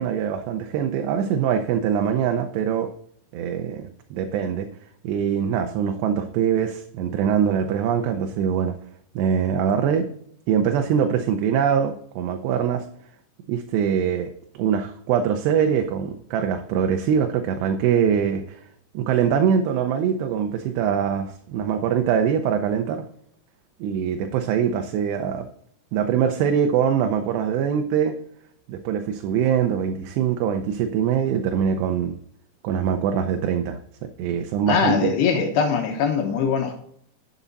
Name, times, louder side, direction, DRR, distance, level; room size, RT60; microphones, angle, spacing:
voice 1, 0.0-2.9 3.3-4.7 5.0-8.8 9.2-10.1 10.5-12.9 13.5-14.3 14.6-18.6 18.9-23.0 23.8-25.5 25.9-28.2 28.7-32.2 32.6-33.8 34.2-35.1, right 8 dB, 80° right, 6 dB, 2.8 m, -23 dB
voice 2, 34.7-36.8, left 6 dB, 75° left, 4 dB, 3.1 m, -22 dB
11.0 x 7.3 x 4.0 m, 0.68 s
omnidirectional pair, 5.1 m